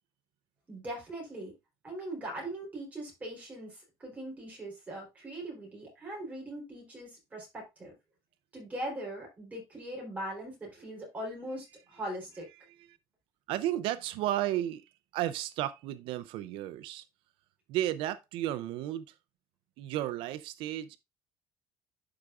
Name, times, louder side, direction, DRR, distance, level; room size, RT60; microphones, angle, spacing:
voice 1, 0.7-1.5 1.8-7.9 8.5-12.5, right 1 dB, 15° right, 3.7 m, -40 dB
voice 2, 13.5-14.8 15.1-17.0 17.7-19.1 19.8-21.0, right 13 dB, 70° right, 0.5 m, -33 dB
11.5 x 4.8 x 2.4 m
cardioid pair, 175°, 9 cm